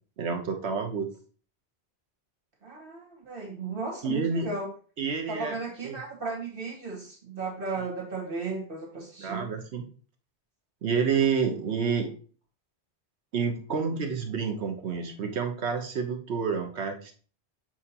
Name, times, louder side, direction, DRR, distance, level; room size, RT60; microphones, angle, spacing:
voice 1, 0.2-1.1 4.0-4.5 5.0-5.5 5.8-6.0 9.2-9.9 10.8-12.1 13.3-17.1, right 5 dB, 85° right, 4 dB, 1.2 m, -29 dB
voice 2, 2.6-4.7 5.3-9.5, right 4 dB, 55° right, -1 dB, 2.0 m, -35 dB
7.5 x 4.9 x 2.8 m, 0.40 s
omnidirectional pair, 1.1 m